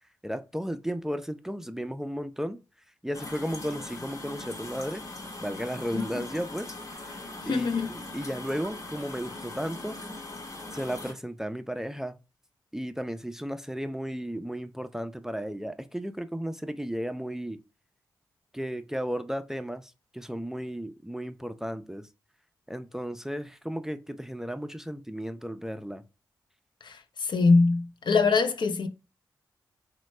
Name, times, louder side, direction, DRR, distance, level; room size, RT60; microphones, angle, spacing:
voice 1, 0.2-2.6 3.0-5.0 5.4-6.7 7.4-10.0 10.7-12.1 12.7-17.6 18.5-22.1 22.7-26.0, equal, 5° right, 0.3 m, -34 dB
sound 1, 3.1-11.1, left 2 dB, 40° left, 0.8 m, -41 dB
voice 2, 5.9-6.2 7.4-7.9 26.8-28.9, left 4 dB, 70° left, 0.5 m, -24 dB
3.1 x 2.1 x 3.1 m
supercardioid pair, 40°, 8 cm